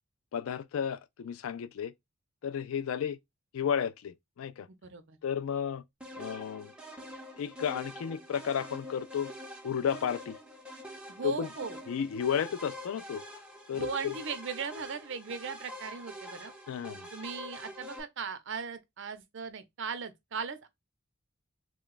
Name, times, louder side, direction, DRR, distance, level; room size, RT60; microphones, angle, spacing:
voice 1, 0.3-1.9 2.4-3.2 3.5-4.7 5.2-5.8 6.2-6.7 7.3-9.3 9.6-10.4 11.2-11.5 11.9-13.2 13.7-14.1 16.7-17.1, left 8 dB, 80° left, 0.3 m, -33 dB
voice 2, 4.7-5.2 11.1-11.8 13.7-16.5 17.1-20.7, right 5 dB, 60° right, 0.6 m, -38 dB
sound 1, 6.0-18.0, equal, 5° right, 0.7 m, -46 dB
3.1 x 2.3 x 3.7 m
head